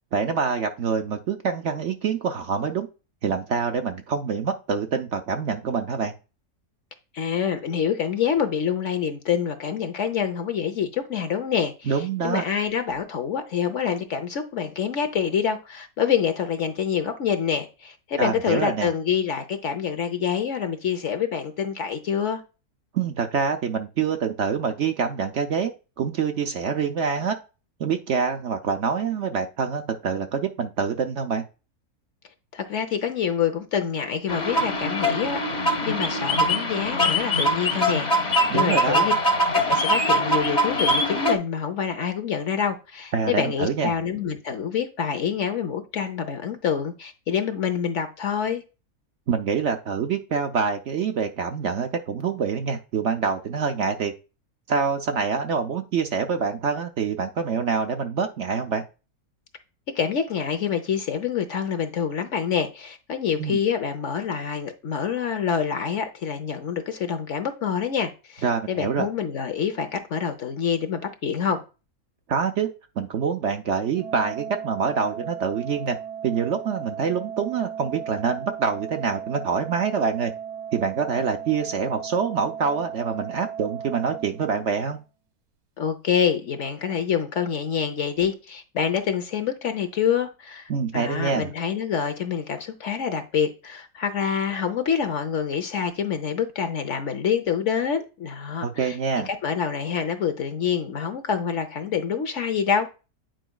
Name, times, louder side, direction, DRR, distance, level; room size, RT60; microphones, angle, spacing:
voice 1, 0.1-2.9 3.2-6.1 11.9-12.4 18.2-18.9 22.9-25.7 26.0-27.4 27.8-31.4 38.5-39.1 43.1-43.9 49.3-54.1 54.7-58.8 63.4-63.6 68.4-69.1 72.3-72.7 73.0-76.0 76.2-80.3 80.7-85.0 90.7-91.5 98.6-99.3, right 6 dB, 60° right, 0.9 m, -26 dB
voice 2, 7.1-22.4 32.5-39.1 39.5-48.6 59.9-71.6 85.8-99.0 99.2-102.9, left 7 dB, 55° left, 1.1 m, -26 dB
sound 1, 34.3-41.3, equal, 35° left, 1.0 m, -22 dB
Organ, 73.9-85.0, right 8 dB, 80° right, 1.6 m, -36 dB
9.1 x 4.9 x 2.3 m
omnidirectional pair, 1.6 m